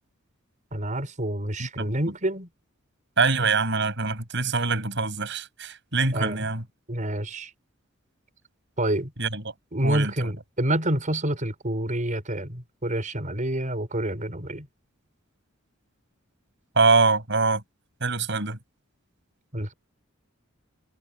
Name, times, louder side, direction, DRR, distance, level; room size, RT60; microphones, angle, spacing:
voice 1, 0.7-2.5 6.1-6.5 6.9-7.5 8.8-9.1 9.7-14.7 19.5-19.7, right 1 dB, 40° right, 5.1 m, -28 dB
voice 2, 1.6-1.9 3.2-6.6 9.2-9.4 9.8-10.3 16.8-17.6 18.0-18.6, right 4 dB, 60° right, 6.9 m, -24 dB
head